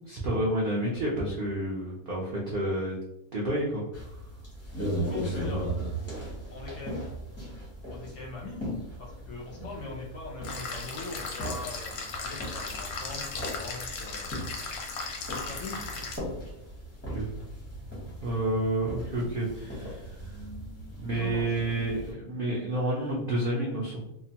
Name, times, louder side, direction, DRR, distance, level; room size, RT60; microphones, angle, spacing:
voice 1, 0.1-3.0 3.3-4.2 17.1-17.3 18.2-20.4 21.0-24.0, right 1 dB, 70° right, -5 dB, 0.5 m, -30 dB
sound 1, 3.9-22.1, right 1 dB, 15° left, 0.5 m, -38 dB
voice 2, 5.0-5.7 6.5-7.0 7.9-8.6 9.0-14.3 15.2-15.9 21.1-21.8 22.0-22.2, left 3 dB, 65° left, -2 dB, 0.7 m, -41 dB
sound 2, 10.4-16.2, left 4 dB, 85° left, 1.1 m, -37 dB
2.8 x 2.1 x 2.7 m, 0.86 s
omnidirectional pair, 1.6 m